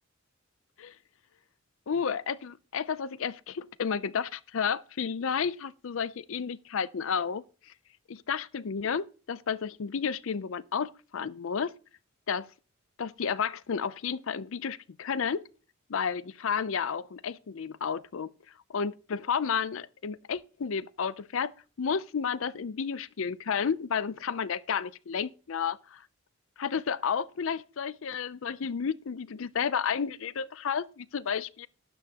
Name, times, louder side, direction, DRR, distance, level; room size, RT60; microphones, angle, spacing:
voice 1, 1.9-7.7 8.1-11.7 12.3-12.5 13.0-15.5 15.9-18.3 18.7-26.0 26.6-31.7, left 6 dB, 65° left, 0.5 m, -32 dB
12.5 x 9.4 x 2.9 m
head